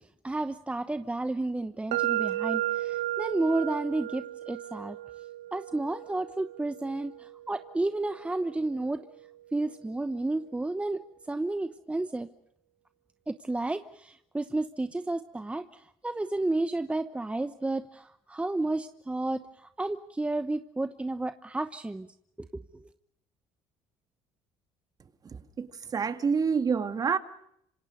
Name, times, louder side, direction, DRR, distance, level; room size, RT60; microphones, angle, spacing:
voice 1, 0.2-5.0 5.5-9.0 9.5-11.0 11.3-12.3 13.3-19.4 19.8-22.1, right 2 dB, 10° right, 1.0 m, -31 dB
sound 1, 1.9-9.8, right 14 dB, 85° right, 0.9 m, -35 dB
voice 2, 25.3-27.2, right 5 dB, 35° right, 1.8 m, -28 dB
27.0 x 25.5 x 5.2 m
cardioid pair, 105°, 11 cm